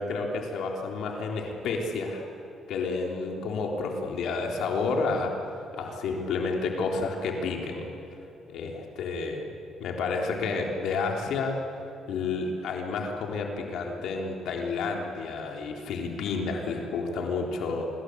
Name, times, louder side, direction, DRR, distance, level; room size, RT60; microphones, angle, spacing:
voice 1, 0.0-2.3 2.7-5.4 5.7-7.9 8.5-9.5 9.8-11.6 12.1-17.9, left 4 dB, 80° left, 1 dB, 3.8 m, -30 dB
26.0 x 21.5 x 8.2 m, 3.0 s
cardioid pair, 90°, 0 cm